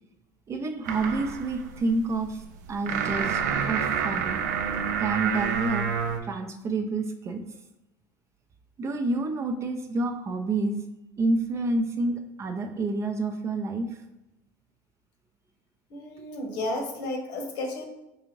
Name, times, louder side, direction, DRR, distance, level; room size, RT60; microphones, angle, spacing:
voice 1, 0.5-2.4 2.7-3.4 3.7-4.4 5.0-5.9 6.2-7.5 8.8-10.9 11.2-13.9, right 2 dB, 30° right, 6 dB, 0.5 m, -28 dB
sound 1, 0.8-6.2, right 7 dB, 85° right, 0.4 m, -29 dB
voice 2, 15.9-17.9, left 2 dB, 65° left, 2 dB, 1.1 m, -32 dB
4.7 x 2.5 x 3.1 m, 0.95 s
hypercardioid pair, 85°, 9 cm